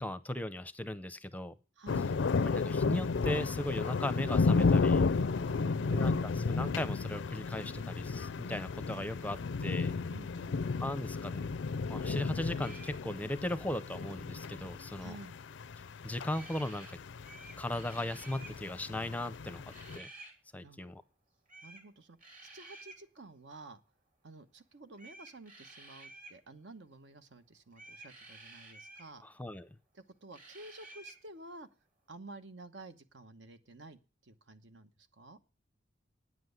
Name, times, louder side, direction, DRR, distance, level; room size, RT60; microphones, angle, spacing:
voice 1, 0.0-1.5 2.4-5.0 5.9-9.9 10.8-11.4 11.9-15.1 15.8-16.9 17.6-19.6 19.9-20.1 20.5-21.0 29.2-29.7, left 1 dB, 10° left, 14 dB, 0.6 m, -37 dB
voice 2, 1.8-2.2 5.4-6.4 10.1-10.6 15.0-15.4 20.6-20.8 21.6-23.8 24.2-29.2 29.9-31.7 32.1-35.4, right 2 dB, 75° right, 10 dB, 1.1 m, -51 dB
sound 1, 1.9-20.0, left 4 dB, 85° left, 0.5 m, -33 dB
sound 2, 12.6-13.0 16.3-16.9 17.2-18.6 19.7-20.3 21.5-21.9 22.2-23.0 24.9-26.4 27.7-29.1 30.3-31.2, right 2 dB, 50° right, 3.1 m, -52 dB
9.5 x 7.7 x 7.9 m, 0.34 s
head